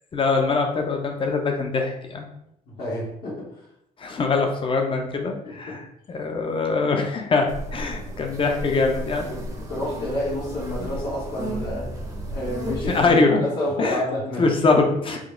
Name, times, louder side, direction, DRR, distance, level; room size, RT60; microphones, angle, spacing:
voice 1, 0.1-2.3 4.0-9.3 12.9-13.4 13.8-14.0 14.4-15.2, left 3 dB, 30° left, 3 dB, 0.7 m, -23 dB
voice 2, 2.7-3.5 5.4-5.8 9.2-12.0 12.3-15.2, left 1 dB, 70° left, -6 dB, 1.5 m, -30 dB
sound 1, 7.5-13.1, right 1 dB, 20° right, 0.8 m, -33 dB
5.0 x 2.0 x 3.8 m, 0.78 s
cardioid pair, 110°, 17 cm